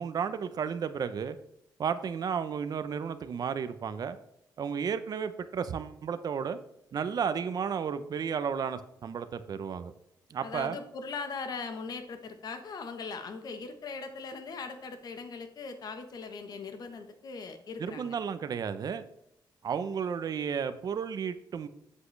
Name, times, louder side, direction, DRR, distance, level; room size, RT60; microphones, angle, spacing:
voice 1, 0.0-1.4 1.8-4.2 4.6-6.6 6.9-9.9 10.3-10.8 17.8-19.0 19.6-21.7, right 7 dB, 50° right, 11 dB, 0.8 m, -33 dB
voice 2, 10.4-18.2, left 4 dB, 55° left, 8 dB, 1.2 m, -40 dB
8.3 x 7.6 x 3.3 m, 0.78 s
cardioid pair, 125°, 8 cm